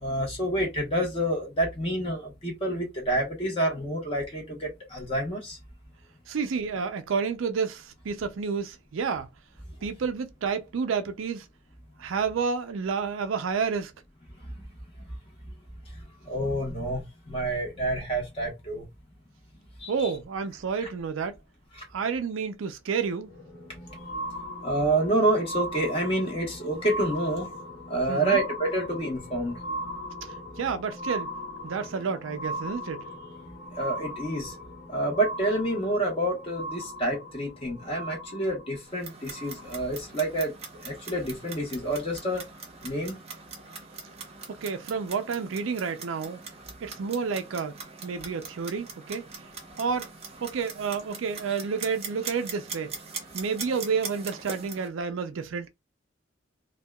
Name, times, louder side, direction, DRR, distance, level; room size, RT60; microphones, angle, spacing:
voice 1, 0.0-5.6 14.4-14.6 15.0-15.1 16.2-18.8 19.8-20.1 20.8-20.9 21.7-21.8 23.9-24.0 24.6-27.5 27.9-29.6 33.8-34.5 34.9-40.5 40.8-42.4 42.8-43.2, right 1 dB, 30° left, 1.1 m, -28 dB
voice 2, 6.3-9.3 9.8-11.5 12.0-13.9 19.9-21.4 21.9-23.3 28.1-28.4 30.6-31.3 31.6-33.0 44.5-46.4 46.8-49.3 49.8-50.1 50.4-52.9 53.3-55.7, right 5 dB, 85° right, 0.4 m, -30 dB
sound 1, 23.2-40.0 40.8-40.9, equal, 70° left, 1.1 m, -38 dB
Clock, 38.9-54.9, right 5 dB, 30° right, 0.7 m, -42 dB
2.7 x 2.3 x 2.2 m
head